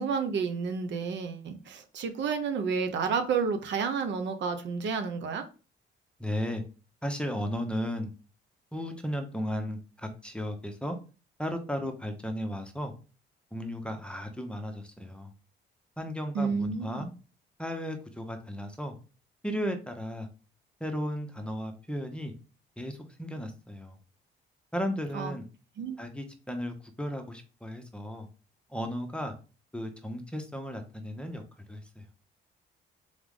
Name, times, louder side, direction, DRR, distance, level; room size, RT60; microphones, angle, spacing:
voice 1, 0.0-5.4 16.3-17.1 25.1-25.3 25.8-26.0, right 5 dB, 65° right, 0.8 m, -30 dB
voice 2, 6.2-6.6 7.0-8.1 8.7-11.0 11.4-12.9 13.5-15.3 16.0-17.1 17.6-18.9 19.4-20.3 20.8-22.3 22.8-24.0 24.7-25.4 26.0-28.3 28.7-29.3 29.7-31.4 31.7-32.0, equal, 5° left, 0.8 m, -35 dB
3.6 x 3.5 x 3.6 m
cardioid pair, 90°, 20 cm